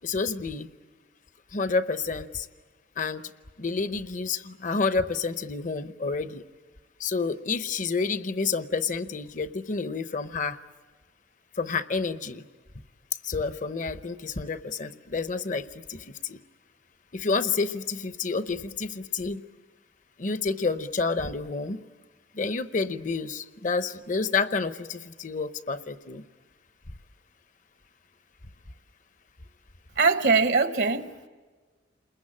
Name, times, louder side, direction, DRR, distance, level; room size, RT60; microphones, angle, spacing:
voice 1, 0.0-0.7 1.5-2.5 3.0-3.2 3.6-6.4 7.0-10.6 11.6-12.4 13.2-16.4 17.1-19.4 20.2-21.8 22.3-26.2, left 4 dB, 40° left, 0.8 m, -29 dB
voice 2, 30.0-31.3, right 4 dB, 60° right, 0.9 m, -22 dB
29.0 x 21.5 x 8.8 m
head